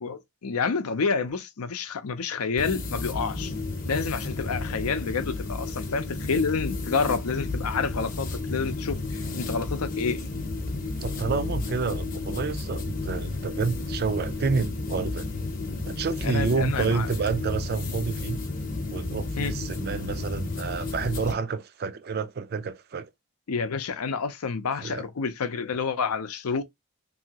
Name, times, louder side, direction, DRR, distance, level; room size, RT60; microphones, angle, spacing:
voice 1, 0.0-3.5 3.9-10.2 16.2-17.1 19.4-19.5 23.5-26.6, left 5 dB, 90° left, 0.6 m, -29 dB
sound 1, 2.6-21.3, left 3 dB, 40° left, 0.7 m, -32 dB
voice 2, 11.0-15.3 15.9-18.4 18.9-23.1 24.8-25.1, right 5 dB, 45° right, 0.4 m, -29 dB
2.8 x 2.7 x 2.8 m
head